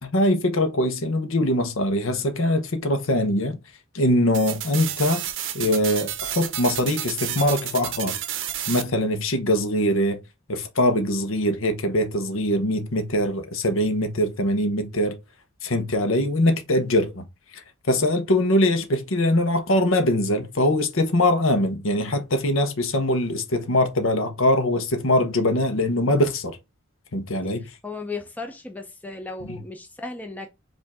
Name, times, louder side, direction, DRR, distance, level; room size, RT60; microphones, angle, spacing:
voice 1, 0.0-3.6 3.9-5.2 5.5-8.2 8.7-10.2 10.5-15.2 15.6-17.2 17.5-26.6 27.1-27.7 29.5-29.6, left 1 dB, 70° left, 0.9 m, -22 dB
sound 1, 4.3-8.8, right 11 dB, 65° right, 0.6 m, -31 dB
voice 2, 27.6-30.5, left 3 dB, 10° left, 0.6 m, -35 dB
5.0 x 2.6 x 3.6 m
head